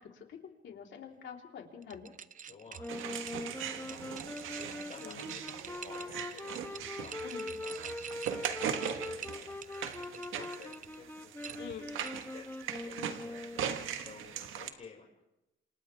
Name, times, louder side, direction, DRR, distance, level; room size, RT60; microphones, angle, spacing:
voice 1, 0.0-2.1 5.0-5.2 7.2-7.5 11.6-11.8, left 7 dB, 70° left, 1 dB, 3.8 m, -46 dB
sound 1, 1.8-11.0 11.4-12.4, right 8 dB, 40° right, 0.6 m, -48 dB
voice 2, 2.4-3.2 3.7-4.1 4.9-11.9 12.3-12.5 12.8-15.2, left 5 dB, 40° left, -3 dB, 5.8 m, -54 dB
Wind instrument woodwind instrument, 2.8-13.9, left 2 dB, 10° left, 1.2 m, -43 dB
sound 2, 2.9-14.7, right 8 dB, 85° right, 1.6 m, -40 dB
28.0 x 28.0 x 3.5 m, 0.93 s
cardioid pair, 90°, 20 cm